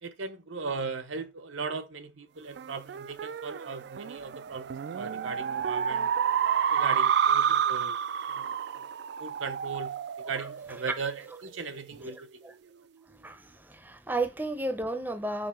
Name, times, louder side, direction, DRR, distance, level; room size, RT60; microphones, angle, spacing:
voice 1, 0.0-6.1 6.7-8.0 8.2-8.6 9.2-10.0 10.3-12.3 12.7-12.9, right 4 dB, 85° right, 0.8 m, -38 dB
sound 1, 2.6-11.4, right 8 dB, 60° right, 0.3 m, -29 dB
voice 2, 13.1-15.5, right 2 dB, 10° right, 0.6 m, -33 dB
5.4 x 4.5 x 4.3 m
head